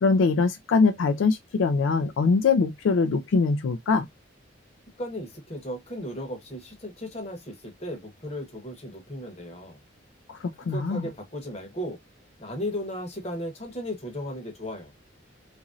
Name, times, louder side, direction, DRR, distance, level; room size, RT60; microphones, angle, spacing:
voice 1, 0.0-4.1 10.3-10.4 10.7-11.1, left 4 dB, 80° left, 0.4 m, -22 dB
voice 2, 5.0-9.8 10.7-12.0 12.4-14.9, equal, 30° left, 0.9 m, -35 dB
2.9 x 2.6 x 2.4 m
head